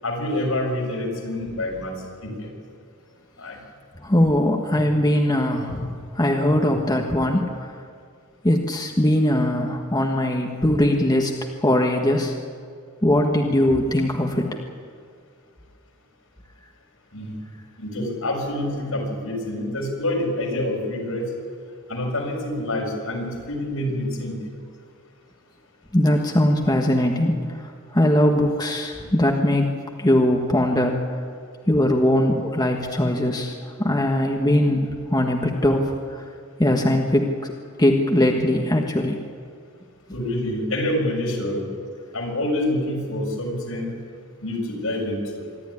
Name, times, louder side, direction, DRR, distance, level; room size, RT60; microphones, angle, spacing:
voice 1, 0.0-1.9 2.2-2.5 3.4-3.6 4.7-4.8 17.1-17.3 17.8-21.2 21.9-24.4 40.1-41.6 42.1-43.9 44.4-45.4, left 1 dB, 75° left, 0 dB, 6.7 m, -27 dB
voice 2, 4.0-7.5 8.4-11.3 11.6-12.3 13.0-14.5 25.9-27.4 27.9-29.7 30.0-31.0 31.7-33.5 33.8-35.9 36.6-37.3 37.8-39.2, left 1 dB, 20° left, 1 dB, 1.5 m, -20 dB
25.5 x 12.5 x 9.8 m, 2.1 s
head